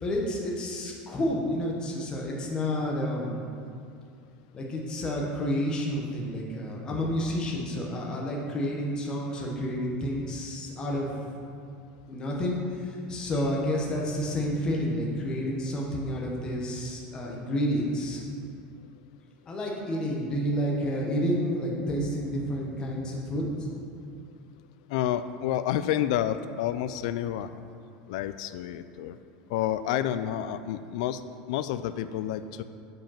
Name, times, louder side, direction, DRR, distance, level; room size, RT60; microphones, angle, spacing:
voice 1, 0.0-3.4 4.5-11.2 12.1-18.2 19.5-23.5, equal, 20° left, -2 dB, 1.1 m, -30 dB
voice 2, 24.9-27.5 28.1-29.2 29.5-31.2 31.5-32.6, left 11 dB, 70° left, 12 dB, 0.3 m, -29 dB
7.0 x 5.3 x 5.7 m, 2.4 s
supercardioid pair, 165°, 4 cm